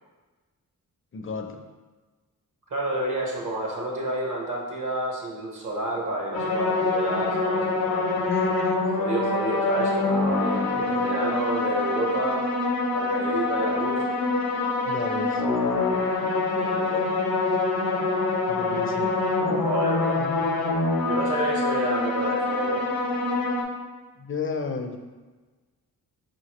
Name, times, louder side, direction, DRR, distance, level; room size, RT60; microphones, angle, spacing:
voice 1, 1.1-1.6 8.2-8.9 10.7-11.0 14.9-15.4 18.5-19.2 20.1-20.5 24.2-25.0, left 4 dB, 35° left, 4 dB, 0.4 m, -33 dB
voice 2, 2.7-8.3 9.0-12.4 12.9-14.0 16.6-17.1 19.6-20.2 21.0-22.9, right 2 dB, 55° right, -2 dB, 1.0 m, -30 dB
sound 1, 6.3-23.6, left 3 dB, 75° left, 0.7 m, -25 dB
4.6 x 2.9 x 2.9 m, 1.3 s
cardioid pair, 75°, 36 cm